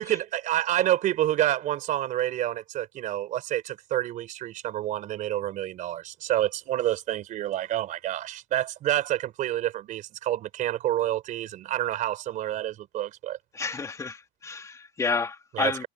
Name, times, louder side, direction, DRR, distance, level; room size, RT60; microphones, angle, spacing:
voice 1, 0.0-13.4 15.5-15.9, right 13 dB, 45° right, 4.4 m, -28 dB
voice 2, 13.5-15.9, left 4 dB, 15° left, 2.2 m, -30 dB
cardioid pair, 150°, 18 cm